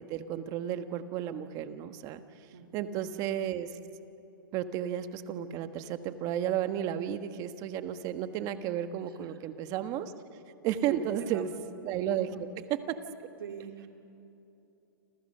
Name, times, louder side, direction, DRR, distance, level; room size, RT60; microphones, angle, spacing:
voice 1, 0.0-2.2 2.7-3.7 4.5-10.1 10.6-11.5 11.8-13.0, right 10 dB, 30° right, 10 dB, 1.3 m, -33 dB
voice 2, 2.5-3.0 9.0-9.4 10.9-11.5 12.3-12.4 13.4-13.9, right 7 dB, 85° right, 4 dB, 3.0 m, -44 dB
29.0 x 27.0 x 6.7 m, 2.8 s
hypercardioid pair, 150°, 12 cm